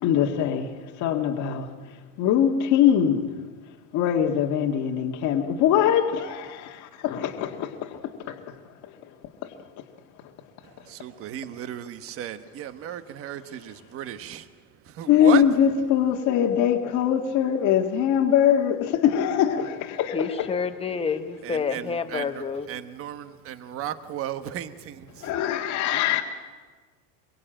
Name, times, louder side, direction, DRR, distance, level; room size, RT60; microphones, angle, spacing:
voice 1, 0.0-3.3 3.9-8.6 8.8-9.1 9.4-9.8 15.1-20.5 25.2-26.2, left 9 dB, 35° left, 1.8 m, -23 dB
voice 2, 10.8-14.5 14.8-15.4 21.4-22.4 22.7-25.3, right 10 dB, 30° right, 1.2 m, -35 dB
voice 3, 20.1-22.7, left 5 dB, 15° left, 1.1 m, -28 dB
25.5 x 22.5 x 9.0 m
supercardioid pair, 165°, 47 cm